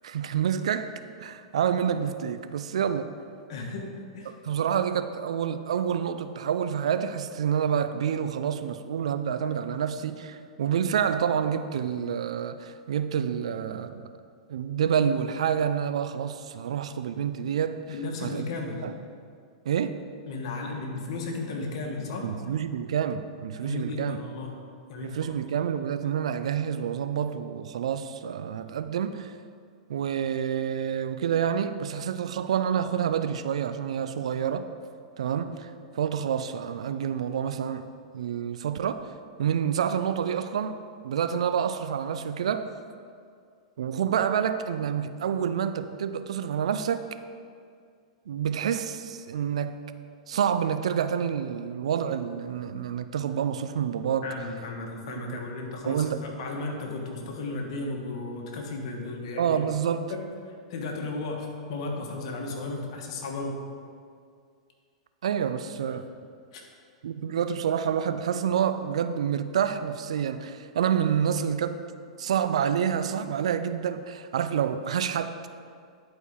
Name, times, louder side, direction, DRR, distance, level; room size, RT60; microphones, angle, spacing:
voice 1, 0.0-0.9 1.2-3.1 4.4-14.0 14.5-17.8 18.2-18.5 18.8-18.9 19.7-20.0 22.2-24.2 25.0-29.3 29.9-34.7 35.2-37.8 38.1-39.1 39.4-40.8 41.0-42.7 43.8-47.0 48.3-49.7 50.3-54.3 55.3-55.4 55.9-56.2 59.4-60.1 65.2-66.1 67.0-71.8 72.2-75.4, right 8 dB, 70° right, 11 dB, 0.4 m, -28 dB
voice 2, 3.5-3.9 4.1-4.3 17.9-18.8 20.3-22.3 23.6-24.5 24.9-25.3 54.2-59.6 60.1-60.2 60.7-63.6 66.5-66.6, left 3 dB, 60° left, 1 dB, 1.4 m, -34 dB
11.0 x 4.5 x 3.7 m, 2.2 s
hypercardioid pair, 105°, 3 cm